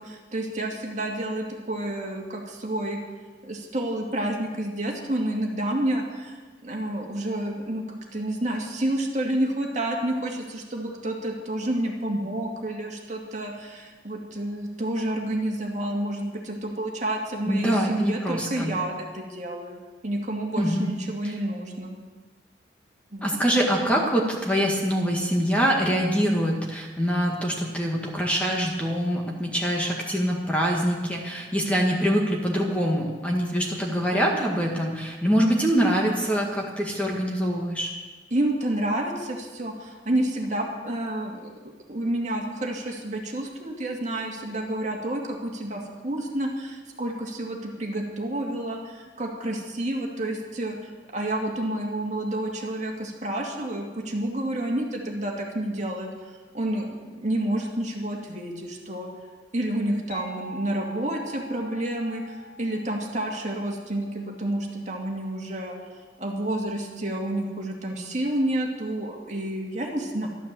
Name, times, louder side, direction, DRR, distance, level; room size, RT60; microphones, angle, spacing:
voice 1, 0.0-3.0 3.4-22.0 23.1-23.3 38.3-56.1 56.5-59.1 59.5-65.8 66.2-70.3, right 1 dB, 40° right, 0 dB, 2.3 m, -29 dB
voice 2, 17.5-18.8 20.6-20.9 23.2-37.9, equal, 5° left, -1 dB, 1.8 m, -24 dB
sound 1, 60.1-65.6, left 1 dB, 85° left, 4.1 m, -45 dB
13.5 x 12.0 x 7.6 m, 1.3 s
head